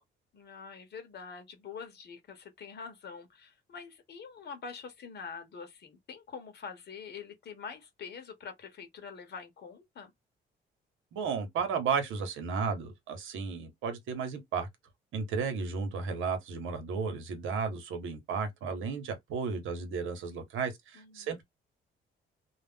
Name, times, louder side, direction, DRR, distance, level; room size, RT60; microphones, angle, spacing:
voice 1, 0.3-10.1 20.9-21.3, left 6 dB, 55° left, 0.9 m, -45 dB
voice 2, 11.1-14.7 15.1-21.4, right 5 dB, 85° right, 0.9 m, -33 dB
2.4 x 2.0 x 3.5 m
cardioid pair, 90°, 20 cm